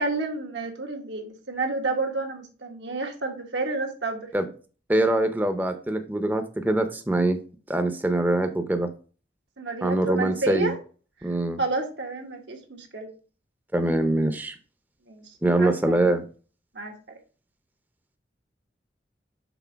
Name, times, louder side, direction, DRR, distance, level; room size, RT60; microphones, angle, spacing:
voice 1, 0.0-4.3 9.6-10.8 11.6-13.1 15.1-16.1 16.7-16.9, right 3 dB, 85° right, 3 dB, 1.3 m, -30 dB
voice 2, 4.9-7.4 7.7-8.9 9.8-10.7 11.2-11.6 13.7-14.6 15.4-16.2, right 1 dB, 10° right, 7 dB, 0.5 m, -23 dB
6.0 x 3.7 x 4.5 m, 0.38 s
head